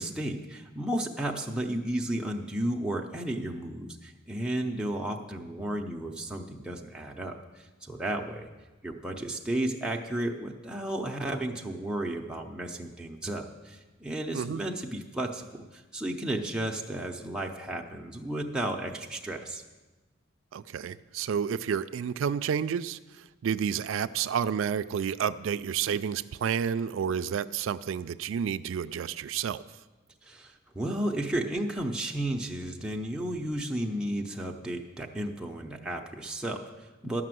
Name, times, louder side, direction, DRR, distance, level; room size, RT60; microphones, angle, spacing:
voice 1, 0.0-8.5 8.8-19.6 30.2-37.2, right 1 dB, 5° right, 0 dB, 0.6 m, -33 dB
voice 2, 20.5-29.6, right 7 dB, 80° right, 12 dB, 0.3 m, -30 dB
12.0 x 5.9 x 7.6 m, 1.2 s
head